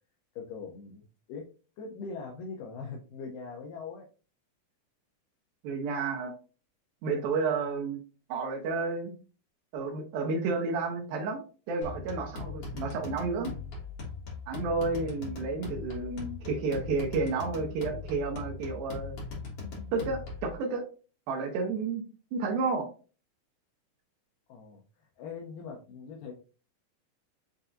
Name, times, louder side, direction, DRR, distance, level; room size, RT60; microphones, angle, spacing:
voice 1, 0.4-1.5 1.8-4.1 24.5-26.3, left 5 dB, 80° left, 0 dB, 2.0 m, -41 dB
voice 2, 5.6-6.3 7.0-8.0 8.3-9.2 9.7-13.5 14.5-19.2 19.9-20.8 21.3-22.0 22.3-22.9, right 4 dB, 75° right, 2 dB, 2.4 m, -31 dB
sound 1, 11.8-20.5, left 4 dB, 50° left, 2.0 m, -40 dB
7.8 x 2.7 x 2.5 m, 0.35 s
omnidirectional pair, 4.5 m